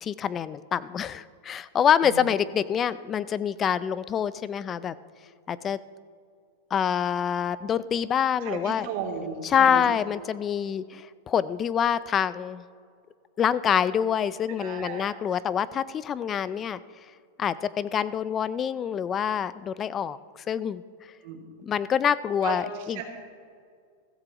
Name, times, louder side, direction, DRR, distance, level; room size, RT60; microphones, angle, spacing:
voice 1, 0.0-4.9 5.5-5.8 6.7-8.9 9.4-12.6 13.4-16.8 17.4-20.2 20.5-20.8 21.6-23.0, left 8 dB, 25° left, 17 dB, 0.4 m, -26 dB
voice 2, 8.4-9.8 14.6-15.2 21.2-21.4 22.4-22.6 22.9-23.0, right 7 dB, 60° right, 0 dB, 2.9 m, -34 dB
15.5 x 15.0 x 3.0 m, 2.2 s
supercardioid pair, 135°, 0 cm